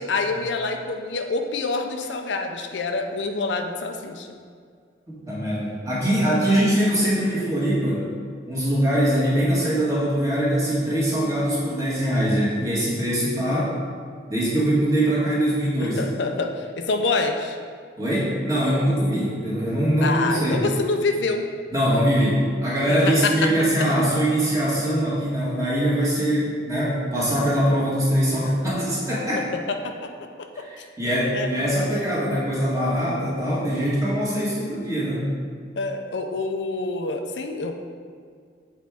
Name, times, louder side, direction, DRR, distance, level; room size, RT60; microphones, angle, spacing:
voice 1, 0.0-4.3 15.8-17.6 20.0-21.5 23.2-23.5 23.8-23.9 29.7-30.1 30.6-30.7 31.3-31.5 35.8-37.7, left 3 dB, 90° left, 5 dB, 0.5 m, -26 dB
voice 2, 5.1-8.0 8.5-13.7 14.3-16.0 18.0-20.6 21.7-29.5 30.6-35.3, equal, 20° right, -7 dB, 1.6 m, -22 dB
7.5 x 4.4 x 3.6 m, 2.1 s
head